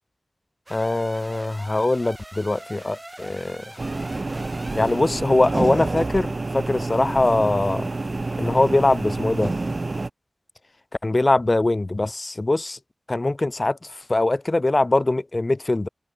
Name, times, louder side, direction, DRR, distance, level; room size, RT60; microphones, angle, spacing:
voice 1, 0.7-3.6 4.7-7.9 8.4-9.5 11.0-12.8 13.1-13.8 14.1-15.9, left 2 dB, 40° left, 0.7 m, -22 dB
sound 1, 0.7-5.1, right 1 dB, 20° right, 4.1 m, -42 dB
sound 2, 3.8-10.1, right 2 dB, 50° right, 0.4 m, -28 dB
open air
wide cardioid pair, 65°, 0 cm